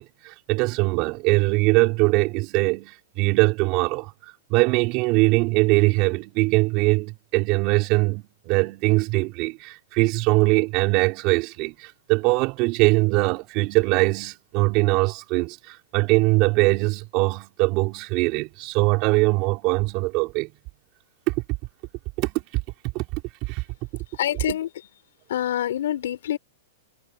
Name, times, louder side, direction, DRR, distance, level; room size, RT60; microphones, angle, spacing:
voice 1, 0.0-4.1 4.5-20.5 21.3-21.4 22.2-22.3 22.9-23.2 23.5-23.6, right 24 dB, 35° right, 5.1 m, -22 dB
voice 2, 24.1-24.7 25.3-26.4, left 11 dB, 70° left, 5.4 m, -26 dB
supercardioid pair, 160°, 0 cm